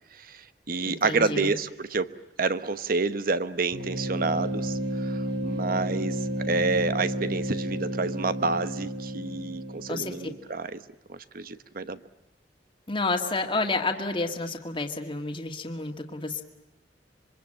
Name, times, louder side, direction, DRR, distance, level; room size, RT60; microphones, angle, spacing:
voice 1, 0.1-2.1 2.4-10.8 11.1-12.0, right 3 dB, 55° right, 13 dB, 1.1 m, -29 dB
voice 2, 0.8-1.5 9.9-10.2 12.9-16.4, left 3 dB, 30° left, 3 dB, 1.9 m, -30 dB
sound 1, 3.7-10.4, equal, 70° right, 3.6 m, -31 dB
26.5 x 23.5 x 8.9 m, 0.95 s
head